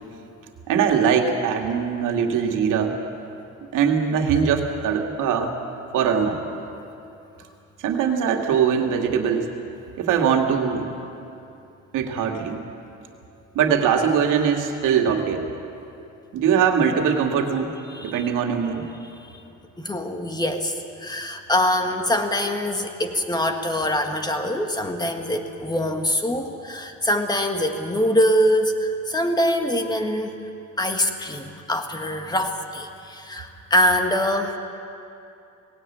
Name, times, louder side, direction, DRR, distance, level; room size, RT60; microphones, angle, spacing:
voice 1, 0.7-3.0 3.7-5.5 5.9-6.4 7.8-9.5 10.0-10.9 11.9-12.6 13.5-15.5 16.3-17.7 18.0-18.9, right 7 dB, 75° right, 2 dB, 2.3 m, -21 dB
voice 2, 19.8-30.3 30.8-34.6, equal, 15° left, 5 dB, 1.6 m, -24 dB
19.5 x 17.0 x 8.7 m, 2.7 s
cardioid pair, 125°, 32 cm